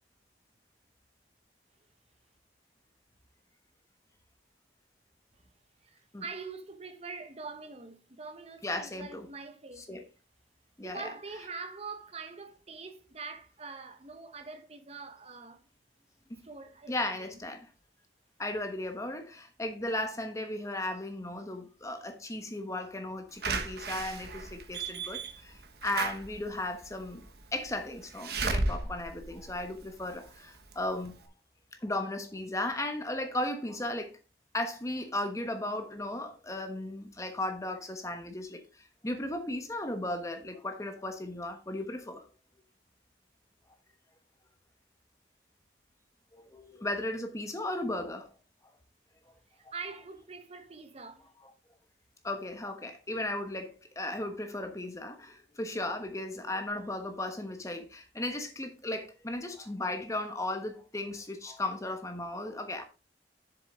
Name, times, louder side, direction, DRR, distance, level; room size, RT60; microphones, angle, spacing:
voice 1, 5.8-10.1 10.8-15.6 16.4-17.4 49.5-51.3, right 4 dB, 35° right, 1.0 m, -44 dB
voice 2, 8.6-9.3 9.8-10.0 10.8-11.0 16.3-16.4 16.9-17.7 18.4-27.3 27.5-31.3 31.8-34.2 34.5-42.3 46.3-48.3 52.2-62.8, left 1 dB, 15° left, 1.1 m, -36 dB
Slam / Alarm, 23.4-30.2 30.7-30.8 31.1-31.2, right 3 dB, 60° right, 1.2 m, -35 dB
7.3 x 7.0 x 3.6 m
head